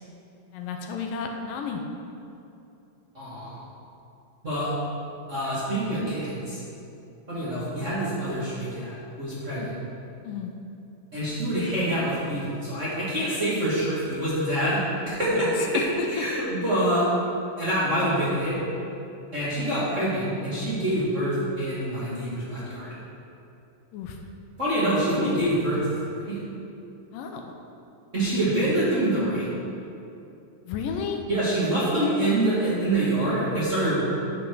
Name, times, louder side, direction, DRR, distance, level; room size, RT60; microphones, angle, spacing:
voice 1, 0.5-1.8 9.6-9.7 10.2-10.5 15.3-16.1 23.9-24.2 27.1-27.4 30.7-31.2, left 6 dB, 85° left, 3 dB, 2.3 m, -32 dB
voice 2, 3.1-3.6 4.4-4.7 5.3-6.6 7.3-9.7 11.1-15.7 16.1-17.1 17.6-18.6 19.3-22.9 24.6-26.4 28.1-29.5 31.3-34.0, right 1 dB, 25° right, -11 dB, 1.8 m, -26 dB
9.5 x 6.1 x 4.7 m, 2.7 s
omnidirectional pair, 4.0 m